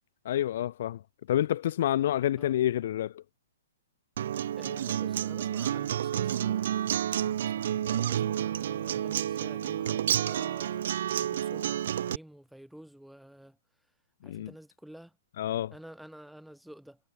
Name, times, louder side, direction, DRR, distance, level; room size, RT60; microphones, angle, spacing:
voice 1, 0.2-1.0 1.3-3.2 14.2-14.5 15.4-15.7, left 12 dB, 55° left, 0.6 m, -28 dB
Acoustic guitar, 4.2-12.2, right 10 dB, 65° right, 1.8 m, -30 dB
voice 2, 4.6-10.9 11.2-13.6 14.2-15.2 15.7-17.1, right 1 dB, ahead, 3.7 m, -50 dB
hypercardioid pair, 145°, 0 cm